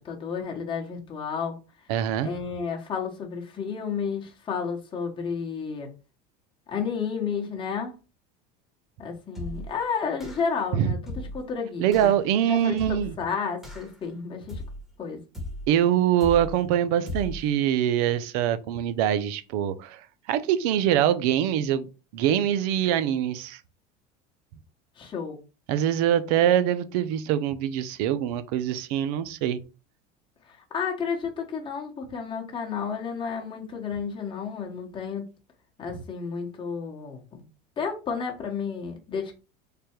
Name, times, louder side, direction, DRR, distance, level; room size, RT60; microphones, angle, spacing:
voice 1, 0.0-1.6 2.2-5.9 6.7-8.0 9.0-11.0 11.3-12.1 12.5-12.8 13.2-14.6 15.0-15.2 25.0-25.4 30.5-35.2 35.8-37.4 37.8-39.3, left 6 dB, 25° left, 1.0 m, -31 dB
voice 2, 1.9-2.3 10.7-10.9 11.8-13.2 15.7-21.9 22.1-23.6 25.7-29.6, right 10 dB, 70° right, 0.6 m, -24 dB
sound 1, 9.3-9.8 10.2-10.6 11.1-11.5 11.9-12.2 12.8-13.2 13.6-14.0 14.5-14.9 15.3-15.8 16.2-16.6 17.1-17.5, left 1 dB, ahead, 1.1 m, -37 dB
3.4 x 2.2 x 4.4 m
supercardioid pair, 125°, 20 cm